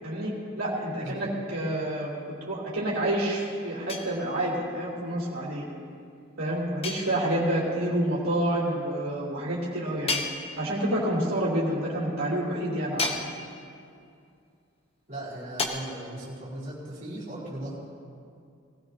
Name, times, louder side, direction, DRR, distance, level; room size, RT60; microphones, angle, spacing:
voice 1, 0.0-2.2 2.5-5.6 6.4-10.2 10.6-13.2, right 1 dB, 90° right, -7 dB, 3.2 m, -28 dB
voice 2, 1.0-1.4 15.1-17.7, right 1 dB, 35° right, -9 dB, 4.4 m, -38 dB
sound 1, 3.9-4.6 6.8-7.6 10.1-11.0 13.0-13.8 15.6-15.7, left 3 dB, 30° left, 1.1 m, -33 dB
20.0 x 16.5 x 2.9 m, 2.4 s
head